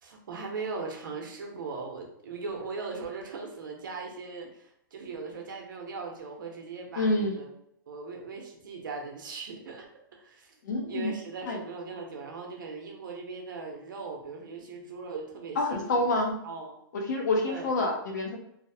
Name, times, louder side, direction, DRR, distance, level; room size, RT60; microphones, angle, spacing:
voice 1, 0.0-7.5 7.9-10.5 10.9-16.1 16.4-16.7 17.4-17.7, right 4 dB, 65° right, 2 dB, 0.7 m, -39 dB
voice 2, 7.0-7.4 10.6-11.1 11.5-11.6 15.6-16.4 16.9-18.4, left 2 dB, 55° left, 1 dB, 0.6 m, -27 dB
2.7 x 2.0 x 2.7 m, 0.75 s
hypercardioid pair, 175°, 11 cm